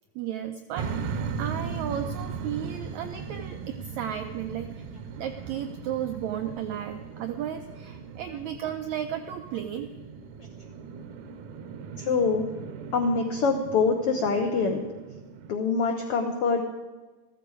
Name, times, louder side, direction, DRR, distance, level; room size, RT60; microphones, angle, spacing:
voice 1, 0.2-0.9 1.4-4.7 5.2-9.9, right 9 dB, 90° right, 6 dB, 1.6 m, -34 dB
sound 1, 0.8-15.6, right 6 dB, 75° right, 1.8 m, -38 dB
voice 2, 12.0-12.5 12.9-14.8 15.5-16.6, left 4 dB, 85° left, 4 dB, 1.3 m, -24 dB
14.0 x 14.0 x 4.8 m, 1.3 s
omnidirectional pair, 4.0 m